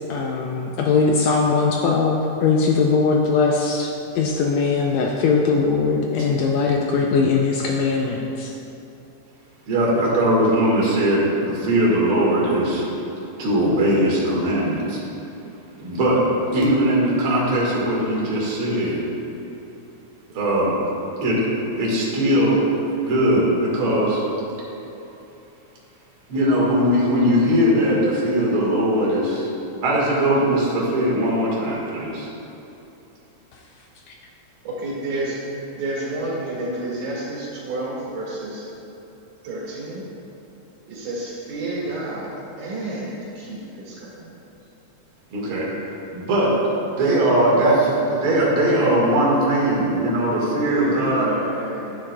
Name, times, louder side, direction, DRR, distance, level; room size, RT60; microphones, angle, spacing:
voice 1, 0.1-3.9 4.1-8.5, left 4 dB, 80° left, 0 dB, 1.6 m, -20 dB
voice 2, 9.7-12.8 13.4-15.0 15.8-16.2 16.5-19.0 20.3-20.8 21.2-21.4 21.8-24.2 26.3-29.5 29.8-32.3 45.3-45.7 46.1-46.5 46.9-51.3, right 1 dB, 50° right, -5 dB, 2.1 m, -20 dB
voice 3, 34.6-38.6 39.4-40.0 40.9-42.3 42.6-44.3 50.5-52.0, right 2 dB, 75° right, -6 dB, 3.3 m, -30 dB
11.0 x 8.8 x 2.2 m, 3.0 s
omnidirectional pair, 3.6 m